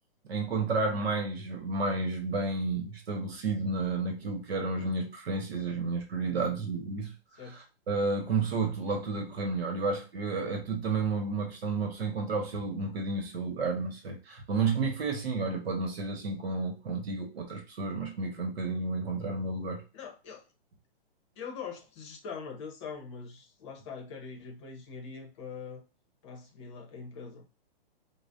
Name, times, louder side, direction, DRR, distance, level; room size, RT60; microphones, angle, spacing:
voice 1, 0.3-19.8, right 3 dB, 80° right, 1.0 m, -31 dB
voice 2, 6.2-6.6 7.4-7.6 19.9-20.5 21.4-25.8 26.2-27.4, left 5 dB, 30° left, 0.7 m, -43 dB
4.9 x 2.1 x 2.5 m
hypercardioid pair, 155°, 30 cm